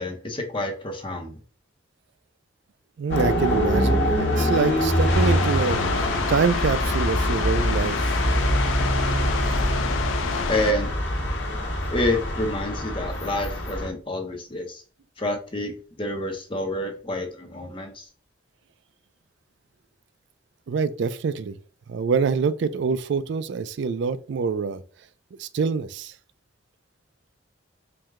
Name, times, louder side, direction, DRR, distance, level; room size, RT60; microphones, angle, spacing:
voice 1, 0.0-1.4 10.5-10.9 11.9-14.8 15.2-18.1, left 1 dB, 25° left, 0.7 m, -28 dB
voice 2, 3.0-8.1 20.7-21.5 21.9-24.8 25.4-26.1, right 5 dB, 65° right, 0.3 m, -25 dB
sound 1, 3.1-13.9, equal, 60° left, 1.1 m, -24 dB
sound 2, 4.3-10.6, equal, 50° right, 1.1 m, -39 dB
sound 3, 5.1-10.7, left 6 dB, 80° left, 0.4 m, -30 dB
4.7 x 2.2 x 3.5 m
head